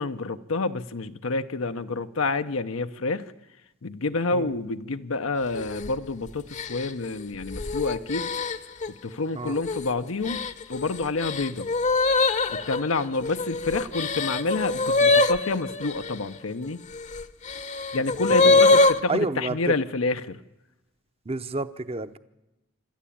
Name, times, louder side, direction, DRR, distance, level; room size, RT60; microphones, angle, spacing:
voice 1, 0.0-3.3 3.8-8.3 8.9-10.4 10.7-11.7 12.5-16.8 17.9-20.4, left 3 dB, 80° left, 8 dB, 0.8 m, -28 dB
sound 1, 5.5-5.9 6.5-8.9 9.5-9.9 10.3-16.1 16.9-19.0, left 3 dB, 35° left, 0.8 m, -23 dB
voice 2, 19.1-19.6 21.3-22.2, right 2 dB, 30° right, 12 dB, 0.7 m, -29 dB
26.5 x 13.0 x 8.6 m, 1.0 s
head